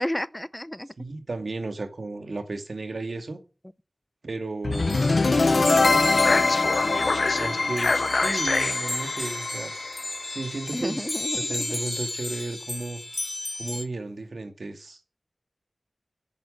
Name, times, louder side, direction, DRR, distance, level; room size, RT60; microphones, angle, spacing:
voice 1, 0.0-0.9 5.2-6.5 10.7-11.8, left 1 dB, 15° left, 0.6 m, -33 dB
voice 2, 1.0-3.4 4.2-5.1 6.8-9.7 10.3-11.1 11.3-13.0 13.6-15.0, right 3 dB, 85° right, 2.4 m, -34 dB
sound 1, 4.6-10.7, left 3 dB, 85° left, 0.7 m, -23 dB
sound 2, 4.7-13.8, left 2 dB, 40° left, 1.7 m, -34 dB
9.8 x 9.3 x 7.9 m
wide cardioid pair, 65°, 0 cm